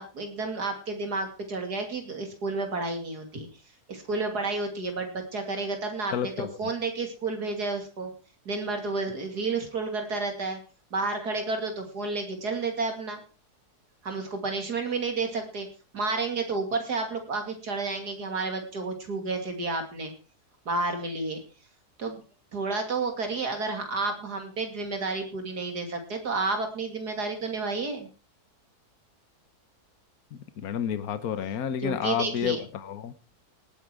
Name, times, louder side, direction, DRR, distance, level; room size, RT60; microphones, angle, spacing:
voice 1, 0.0-3.5 3.9-8.1 8.5-10.6 10.9-13.2 14.0-15.7 15.9-20.1 20.7-21.4 22.0-22.2 22.5-28.1 31.8-32.6, right 3 dB, 90° right, 5 dB, 3.4 m, -31 dB
voice 2, 6.1-6.6 30.6-33.1, left 9 dB, 70° left, 12 dB, 1.4 m, -30 dB
18.0 x 9.1 x 4.8 m, 0.36 s
omnidirectional pair, 1.7 m